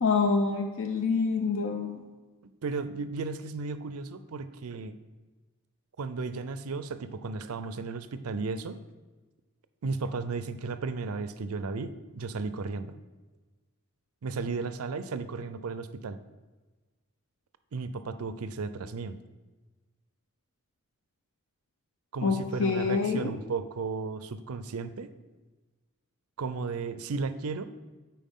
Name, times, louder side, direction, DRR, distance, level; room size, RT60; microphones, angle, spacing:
voice 1, 0.0-2.0 22.2-23.3, left 4 dB, 65° left, 5 dB, 0.5 m, -26 dB
voice 2, 2.6-5.0 6.0-8.8 9.8-12.9 14.2-16.2 17.7-19.2 22.1-25.1 26.4-27.7, right 4 dB, 90° right, 12 dB, 0.5 m, -34 dB
9.2 x 4.5 x 3.7 m, 1.3 s
head